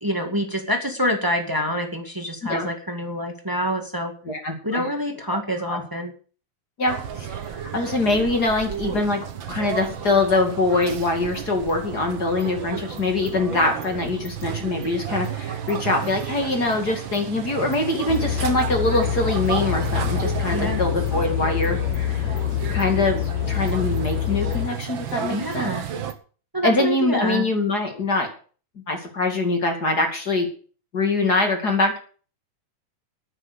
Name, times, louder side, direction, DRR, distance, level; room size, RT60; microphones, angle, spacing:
voice 1, 0.0-4.1 4.6-6.1 20.5-20.8 25.3-25.8 26.5-27.5, equal, 15° right, 4 dB, 0.8 m, -26 dB
voice 2, 4.2-4.9 5.7-5.8 6.8-9.2 9.5-22.4 22.7-25.7 26.6-28.3 28.9-30.5 30.9-32.0, left 2 dB, 30° left, 4 dB, 2.6 m, -23 dB
sound 1, 6.9-26.1, right 8 dB, 65° right, 1.2 m, -32 dB
sound 2, 18.1-24.7, left 12 dB, 80° left, 1.6 m, -26 dB
9.9 x 9.4 x 8.4 m, 0.40 s
omnidirectional pair, 4.1 m